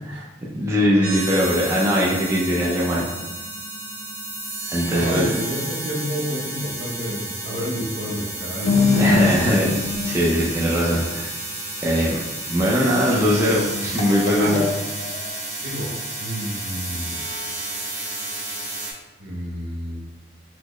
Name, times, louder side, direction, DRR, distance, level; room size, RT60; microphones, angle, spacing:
voice 1, 0.5-3.1 4.7-5.3 9.0-9.7 10.0-11.3 11.8-12.2 12.5-14.7, equal, 15° right, -5 dB, 0.4 m, -20 dB
sound 1, 1.0-18.9, right 2 dB, 45° right, 0.9 m, -31 dB
voice 2, 4.9-9.4 14.4-14.6 15.5-17.1 19.2-20.0, equal, 70° right, -2 dB, 0.7 m, -29 dB
sound 2, 8.6-10.6 12.9-15.3, left 4 dB, 90° left, 0.4 m, -23 dB
4.2 x 2.1 x 3.0 m, 1.1 s
head